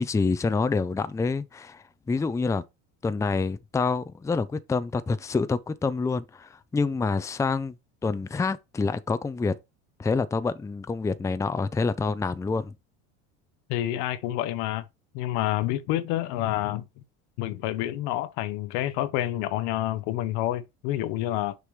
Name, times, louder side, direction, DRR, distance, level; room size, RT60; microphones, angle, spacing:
voice 1, 0.0-2.6 3.0-7.7 8.0-9.5 10.0-12.7, left 4 dB, 10° left, 0.5 m, -27 dB
voice 2, 13.7-14.8 15.1-16.8 17.4-21.6, left 14 dB, 70° left, 0.9 m, -28 dB
6.6 x 4.8 x 3.3 m
supercardioid pair, 110°, 32 cm